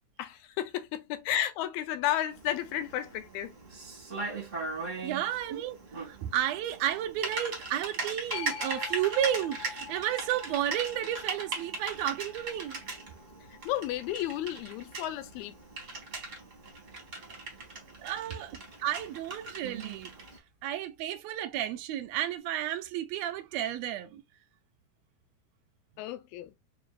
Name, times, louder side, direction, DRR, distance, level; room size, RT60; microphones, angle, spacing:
voice 1, 0.2-3.6 13.5-15.6 26.0-26.5, left 12 dB, 85° left, 1.9 m, -33 dB
Typing, 2.3-20.4, right 3 dB, 45° right, 1.0 m, -40 dB
voice 2, 5.0-12.8 18.0-20.1 20.6-24.2, right 11 dB, 80° right, 1.6 m, -32 dB
sound 1, 8.3-15.5 21.0-21.1, left 8 dB, 60° left, 1.7 m, -46 dB
4.8 x 2.6 x 2.3 m
omnidirectional pair, 3.3 m